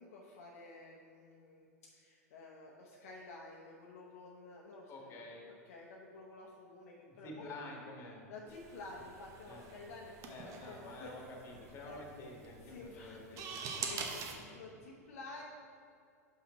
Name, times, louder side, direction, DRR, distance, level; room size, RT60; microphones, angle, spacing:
voice 1, 0.0-1.7 1.9-5.2 5.5-7.5 8.3-11.3 11.8-12.0 12.6-14.1 14.5-15.4, left 2 dB, 60° left, -2 dB, 0.8 m, -51 dB
voice 2, 4.9-5.4 7.1-8.2 9.5-9.6 10.3-14.7, left 2 dB, 30° left, 0 dB, 1.6 m, -50 dB
sound 1, 8.5-14.3, right 5 dB, 35° right, 0.9 m, -45 dB
6.0 x 5.8 x 4.2 m, 2.5 s
hypercardioid pair, 100°, 9 cm